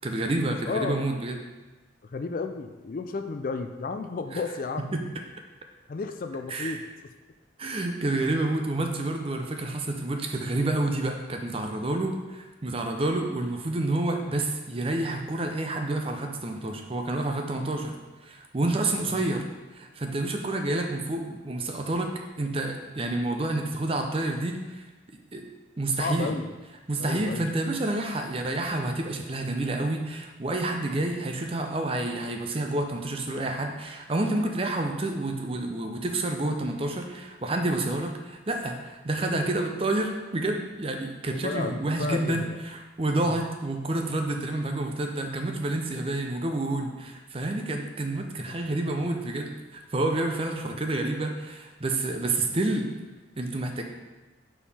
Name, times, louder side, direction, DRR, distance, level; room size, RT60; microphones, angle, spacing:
voice 1, 0.0-1.4 4.3-4.4 4.9-5.0 6.5-6.8 7.6-17.9 18.2-19.4 19.7-24.9 25.3-25.5 25.8-26.3 26.9-52.9 53.4-53.8, right 2 dB, 30° right, 3 dB, 0.5 m, -29 dB
voice 2, 0.7-1.0 2.1-4.9 5.9-6.8 19.1-19.2 26.0-26.5 27.0-27.4 41.3-42.6 43.2-43.4, left 4 dB, 45° left, 7 dB, 0.3 m, -32 dB
5.4 x 4.6 x 4.2 m, 1.2 s
head